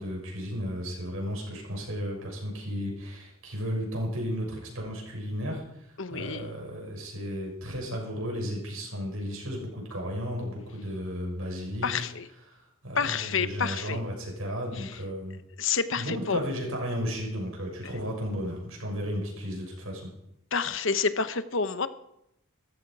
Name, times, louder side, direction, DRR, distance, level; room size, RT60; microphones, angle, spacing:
voice 1, 0.0-12.1 12.5-15.4 16.0-20.1, equal, 80° right, 0 dB, 6.6 m, -34 dB
voice 2, 6.0-6.5 11.8-12.3 13.0-14.0 14.7-15.0 15.6-16.4 20.5-21.9, left 5 dB, 65° left, 12 dB, 1.0 m, -29 dB
17.5 x 14.5 x 4.8 m, 0.81 s
head